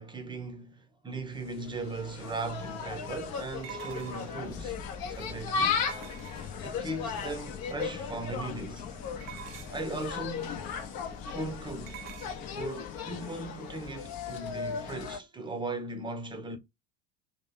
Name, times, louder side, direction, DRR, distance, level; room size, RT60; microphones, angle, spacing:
voice 1, 0.0-4.8 5.1-5.8 6.6-8.9 9.7-10.6 11.3-12.1 12.5-16.6, right 2 dB, 10° right, 0.7 m, -38 dB
Insect, 1.4-15.2, left 6 dB, 45° left, 0.8 m, -36 dB
sound 1, 2.1-2.2 3.6-4.5 5.9-6.8 9.2-9.9 11.9-12.4, right 11 dB, 50° right, 0.7 m, -45 dB
sound 2, 4.5-12.5, left 3 dB, 10° left, 0.4 m, -48 dB
2.9 x 2.6 x 3.7 m
figure-of-eight pair, 65°, 49 cm